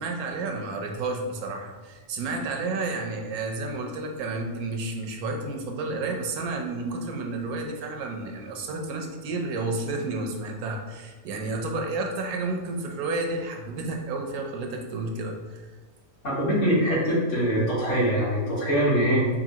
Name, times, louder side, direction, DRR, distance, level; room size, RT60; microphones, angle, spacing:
voice 1, 0.0-15.7, right 3 dB, 85° right, 3 dB, 1.1 m, -31 dB
voice 2, 16.2-19.3, equal, 55° left, -7 dB, 1.7 m, -23 dB
5.1 x 2.6 x 2.8 m, 1.3 s
omnidirectional pair, 1.5 m